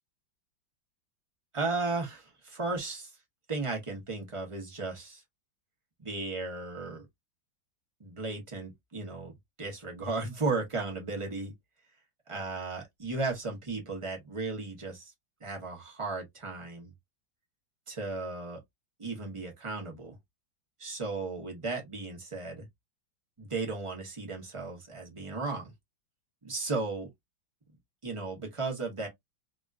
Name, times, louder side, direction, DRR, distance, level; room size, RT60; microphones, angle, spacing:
voice 1, 1.5-3.2 3.5-5.2 6.0-7.1 8.0-11.5 12.3-15.1 15.4-16.9 17.9-18.6 19.0-20.2 20.8-22.7 23.4-25.7 26.4-27.1 28.0-29.1, right 3 dB, 35° right, 0.5 m, -35 dB
3.5 x 2.4 x 2.4 m
omnidirectional pair, 2.1 m